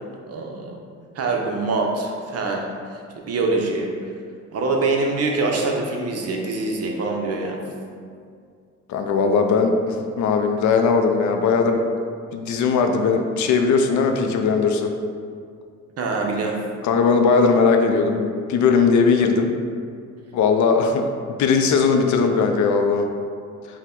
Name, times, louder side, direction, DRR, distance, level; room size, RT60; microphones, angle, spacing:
voice 1, 0.3-0.8 1.1-2.7 3.2-3.9 4.5-7.6 16.0-16.6, right 3 dB, 55° right, 1 dB, 0.7 m, -24 dB
voice 2, 8.9-11.8 12.3-14.9 16.8-19.5 20.3-21.1 21.4-23.0, left 5 dB, 70° left, 5 dB, 0.5 m, -19 dB
4.5 x 2.1 x 3.7 m, 2.2 s
cardioid pair, 90°, 30 cm